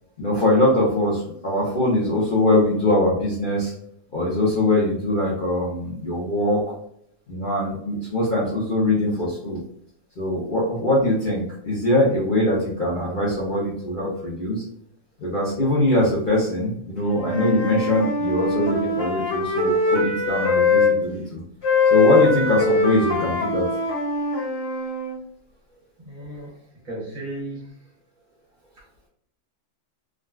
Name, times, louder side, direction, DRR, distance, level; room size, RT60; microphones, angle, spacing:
voice 1, 0.2-3.7 4.1-6.7 7.3-9.6 10.2-14.6 15.2-21.4 21.9-23.7, left 1 dB, 50° left, -7 dB, 0.7 m, -22 dB
Wind instrument woodwind instrument, 17.0-20.9 21.6-25.1, left 3 dB, 65° left, 1.4 m, -22 dB
voice 2, 26.0-26.5 26.8-27.7, right 1 dB, 65° right, -5 dB, 1.6 m, -34 dB
3.6 x 2.2 x 2.2 m, 0.68 s
omnidirectional pair, 1.6 m